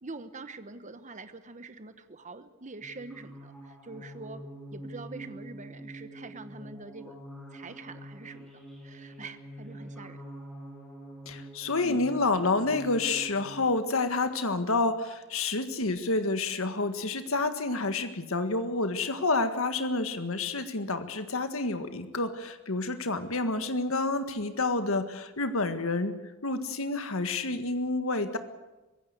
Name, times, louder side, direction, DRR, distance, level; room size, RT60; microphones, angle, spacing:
voice 1, 0.0-4.4 4.7-7.1 7.5-8.5 8.8-10.2 11.8-12.1, right 3 dB, 35° right, 10 dB, 1.1 m, -44 dB
sound 1, 2.8-13.7, right 1 dB, ahead, 6.4 m, -45 dB
voice 2, 11.2-26.1 26.4-28.4, left 3 dB, 75° left, 9 dB, 1.7 m, -29 dB
24.5 x 16.0 x 8.2 m, 1.1 s
head